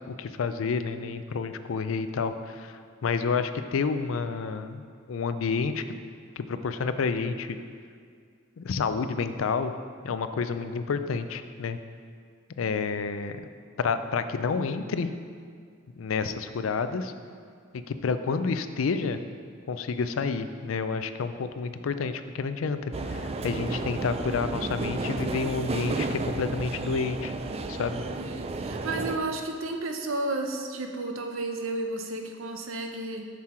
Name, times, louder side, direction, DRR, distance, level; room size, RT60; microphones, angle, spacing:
voice 1, 0.1-4.8 5.1-5.8 6.4-7.6 8.6-9.7 10.0-11.8 12.6-13.4 13.8-15.1 16.0-17.1 17.7-19.2 19.7-27.3 27.7-28.0, left 5 dB, 80° left, 10 dB, 0.4 m, -29 dB
sound 1, 22.9-29.2, right 3 dB, 30° right, 0.4 m, -32 dB
voice 2, 28.2-33.3, right 2 dB, 80° right, 4 dB, 0.7 m, -32 dB
7.4 x 6.2 x 4.3 m, 2.1 s
head